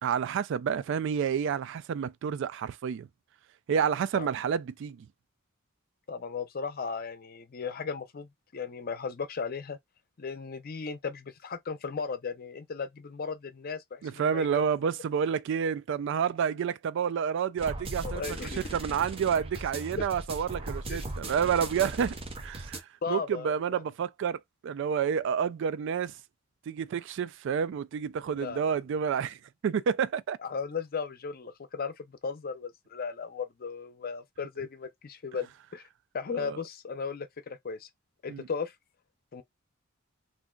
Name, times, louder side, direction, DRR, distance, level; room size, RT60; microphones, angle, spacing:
voice 1, 0.0-3.1 3.7-5.1 14.0-26.1 26.7-30.4 36.3-36.6 38.3-38.5, right 7 dB, 65° right, 0.3 m, -29 dB
voice 2, 6.1-9.8 10.2-14.6 18.0-18.8 20.9-21.0 23.0-23.8 28.3-28.6 30.4-35.8 36.1-37.9 38.2-38.7 39.3-39.4, left 5 dB, 50° left, 0.6 m, -36 dB
sound 1, 17.6-22.8, right 2 dB, 30° right, 0.6 m, -38 dB
2.6 x 2.2 x 3.7 m
head